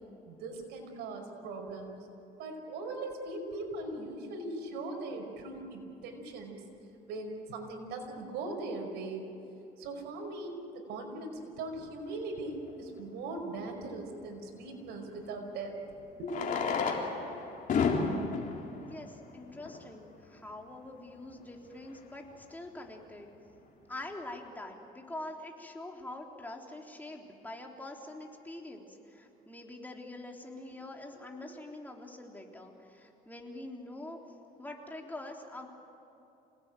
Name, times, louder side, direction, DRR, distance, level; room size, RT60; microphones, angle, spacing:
voice 1, 0.3-2.0 2.4-6.6 7.1-9.2 9.8-15.7 16.2-16.4, right 2 dB, 85° right, 2 dB, 5.3 m, -40 dB
Fireworks, 12.7-12.8 15.0-15.1 16.2-20.0 20.7-20.8 21.0-21.1 21.3-21.4 21.9-22.2, left 5 dB, 50° left, 3.6 m, -32 dB
voice 2, 18.8-23.3 23.9-34.2 34.6-35.7, left 1 dB, 10° left, 1 dB, 3.5 m, -45 dB
27.5 x 19.0 x 9.2 m, 2.9 s
cardioid pair, 110°, 17 cm